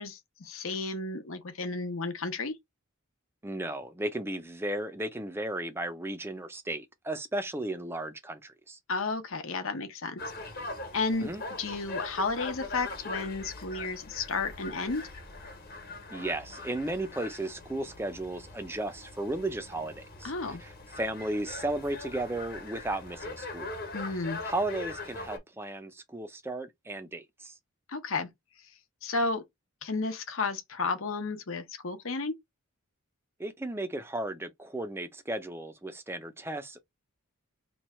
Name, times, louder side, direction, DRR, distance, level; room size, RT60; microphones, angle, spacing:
voice 1, 0.0-2.6 8.9-10.2 10.9-11.3 11.6-15.1 20.2-20.6 23.9-24.4 27.9-28.3 29.0-29.4 29.8-32.4, left 3 dB, 65° left, 0.8 m, -32 dB
voice 2, 3.4-8.8 11.2-11.4 16.1-23.7 24.4-27.5 33.4-36.8, right 1 dB, 10° right, 0.4 m, -35 dB
sound 1, 10.2-25.4, left 3 dB, 45° left, 1.1 m, -42 dB
3.0 x 2.3 x 4.2 m
head